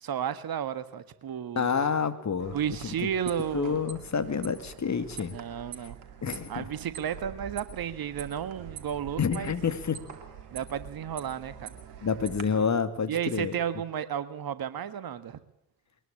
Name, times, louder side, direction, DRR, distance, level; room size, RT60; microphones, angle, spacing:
voice 1, 0.0-1.7 2.5-3.8 5.3-6.0 6.5-9.5 10.5-11.8 13.1-15.4, right 9 dB, 50° right, 13 dB, 1.7 m, -33 dB
voice 2, 1.6-2.6 2.8-3.1 3.5-5.4 5.8-5.9 6.2-6.7 9.2-10.0 12.0-13.6, left 6 dB, 35° left, 9 dB, 2.3 m, -28 dB
sound 1, 2.4-12.4, right 8 dB, 75° right, 2.6 m, -45 dB
21.5 x 20.0 x 8.8 m, 0.73 s
figure-of-eight pair, 40°, 46 cm